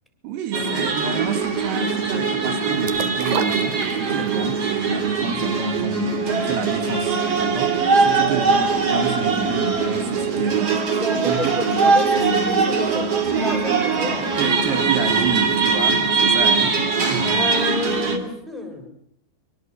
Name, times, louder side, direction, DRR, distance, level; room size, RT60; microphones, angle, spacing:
voice 1, 0.2-11.6 14.4-17.5, right 7 dB, 85° right, 9 dB, 4.2 m, -30 dB
sound 1, 0.5-18.2, right 4 dB, 40° right, 3.3 m, -21 dB
sound 2, 2.9-4.4 4.8-4.9, right 9 dB, 65° right, 3.0 m, -29 dB
voice 2, 11.0-14.2 17.2-18.9, left 1 dB, ahead, 3 dB, 6.6 m, -30 dB
27.0 x 24.0 x 8.3 m, 0.72 s
omnidirectional pair, 4.6 m